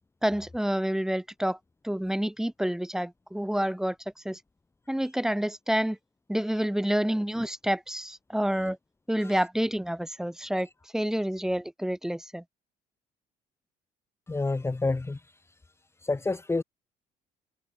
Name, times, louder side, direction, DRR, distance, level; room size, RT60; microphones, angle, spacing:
voice 1, 0.2-1.6 1.8-4.0 4.2-4.4 4.9-6.0 6.3-8.8 9.1-10.7 10.9-12.4, equal, 5° right, 4.7 m, -28 dB
voice 2, 14.3-15.2 16.0-16.6, left 3 dB, 15° left, 2.0 m, -28 dB
cardioid pair, 110°, 17 cm